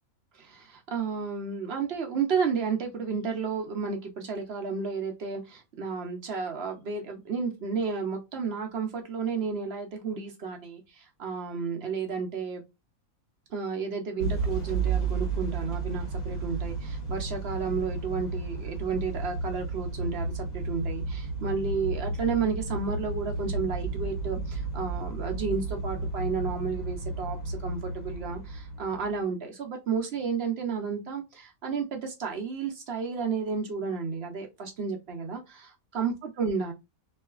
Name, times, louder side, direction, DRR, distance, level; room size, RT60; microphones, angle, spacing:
voice 1, 0.3-12.6 13.5-36.7, right 5 dB, 65° right, 0.6 m, -32 dB
Motor vehicle (road) / Engine starting / Accelerating revving vroom, 14.2-29.2, right 3 dB, 60° left, 1.7 m, -32 dB
3.1 x 2.7 x 2.3 m
omnidirectional pair, 1.6 m